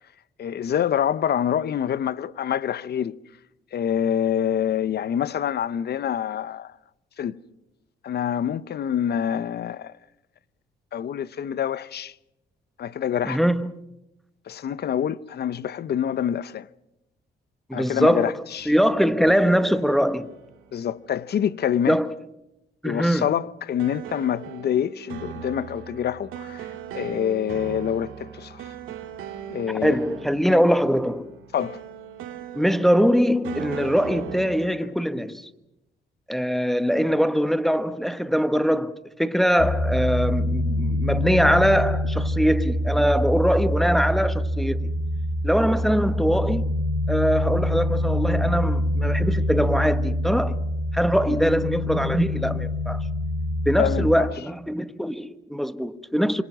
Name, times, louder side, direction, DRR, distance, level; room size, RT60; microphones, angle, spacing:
voice 1, 0.4-3.1 3.7-6.8 7.2-7.4 8.0-9.9 10.9-12.1 12.8-13.4 14.5-16.7 17.7-18.7 20.7-22.0 22.8-28.8 29.5-30.0 30.5-30.6 31.5-31.8 51.3-51.4 53.8-54.3, left 9 dB, 55° left, 0.8 m, -26 dB
voice 2, 13.3-13.7 17.7-20.3 21.9-22.1 22.8-23.3 29.8-31.3 32.5-35.5 36.3-44.9 45.4-46.7 47.1-50.6 50.9-53.0 53.6-56.4, equal, ahead, 1.1 m, -22 dB
sound 1, 18.6-21.5 23.8-34.9, right 9 dB, 90° right, 2.8 m, -39 dB
sound 2, 39.6-54.1, left 1 dB, 75° left, 4.6 m, -25 dB
26.5 x 25.0 x 6.1 m
cardioid pair, 90°, 20 cm